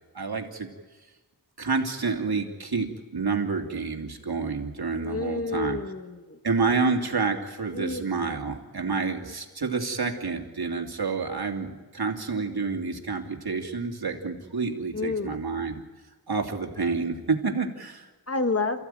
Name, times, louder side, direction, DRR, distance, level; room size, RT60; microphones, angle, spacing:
voice 1, 0.1-0.7 1.6-5.8 6.4-15.8 16.3-18.1, right 4 dB, 65° right, 3 dB, 2.9 m, -29 dB
voice 2, 5.0-6.4 7.7-8.4 14.9-15.4 18.3-18.8, left 3 dB, 35° left, 7 dB, 1.5 m, -30 dB
28.5 x 15.5 x 9.2 m, 1.2 s
wide cardioid pair, 90°, 40 cm